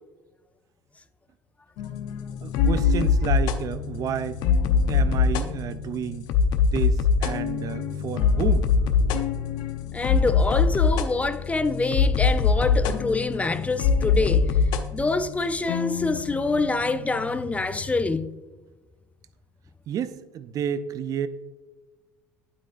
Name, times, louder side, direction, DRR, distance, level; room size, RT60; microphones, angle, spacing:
sound 1, 1.8-18.1, left 5 dB, 65° left, 0.6 m, -24 dB
voice 1, 2.4-4.4 4.9-6.3 6.6-8.7 19.9-21.3, right 8 dB, 50° right, 0.5 m, -31 dB
voice 2, 9.9-14.6 14.9-18.4, left 3 dB, 15° left, 0.4 m, -26 dB
9.0 x 8.4 x 2.5 m
hypercardioid pair, 75°, 8 cm